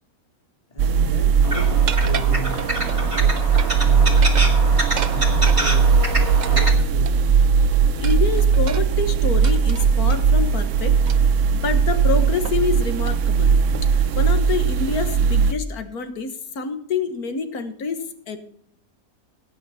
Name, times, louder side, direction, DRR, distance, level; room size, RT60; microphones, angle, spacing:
voice 1, 0.7-3.5 3.8-4.7 5.1-6.1 6.4-7.4, right 1 dB, 25° left, 2 dB, 2.4 m, -35 dB
sound 1, 0.8-15.5, right 6 dB, 60° right, 0.9 m, -18 dB
sound 2, 1.4-6.7, right 1 dB, 20° right, 1.9 m, -27 dB
sound 3, 1.9-3.0 3.4-3.8 4.1-5.7 6.4-7.4 8.0-10.2 11.1-11.4 11.8-11.9 12.4-12.7 13.0-13.2 13.7-14.1, right 7 dB, 80° right, 0.4 m, -34 dB
voice 2, 8.0-11.0 11.5-13.6 13.9-18.4, left 5 dB, 70° left, 9 dB, 1.8 m, -27 dB
16.5 x 8.6 x 4.2 m, 0.68 s
omnidirectional pair, 1.7 m